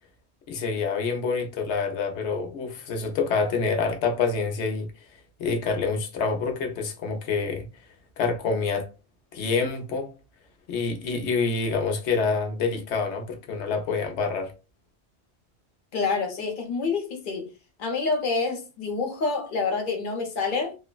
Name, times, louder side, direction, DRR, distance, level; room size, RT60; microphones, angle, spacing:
voice 1, 0.5-4.9 5.4-7.7 8.2-8.9 9.3-10.1 10.7-14.5, left 4 dB, 80° left, 0.9 m, -27 dB
voice 2, 15.9-17.5 17.8-20.8, left 4 dB, 50° left, 0.8 m, -27 dB
3.1 x 2.0 x 2.2 m
omnidirectional pair, 1.1 m